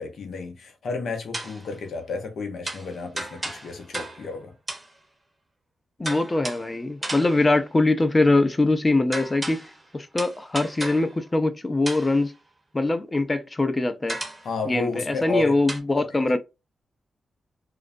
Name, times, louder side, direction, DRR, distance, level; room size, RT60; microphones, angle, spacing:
voice 1, 0.0-4.5 14.4-15.6 16.0-16.2, left 4 dB, 70° left, 0.6 m, -32 dB
sound 1, 1.3-1.7 2.6-4.4 4.7-5.0 6.0-6.7 7.0-7.6 9.1-9.8 10.2-11.2 11.9-12.3 14.1-14.5 15.7-15.8, right 2 dB, 30° right, 0.8 m, -34 dB
voice 2, 6.0-9.6 9.9-12.3 12.7-14.2 14.7-16.4, left 2 dB, 30° left, 0.5 m, -22 dB
2.4 x 2.0 x 2.5 m
supercardioid pair, 40°, 0 cm